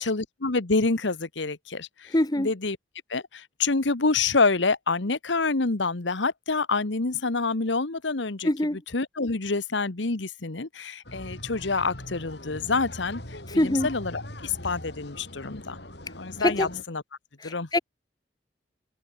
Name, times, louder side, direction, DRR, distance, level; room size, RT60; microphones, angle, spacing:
voice 1, 0.0-2.8 3.1-13.2 13.5-15.8 16.2-17.0 17.4-17.7, left 3 dB, 80° left, 1.3 m, -27 dB
voice 2, 2.1-2.5 8.4-8.8 13.6-13.9 16.4-16.7 17.7-17.8, left 1 dB, 20° left, 1.1 m, -23 dB
sound 1, 11.0-16.8, left 1 dB, 60° left, 7.0 m, -41 dB
head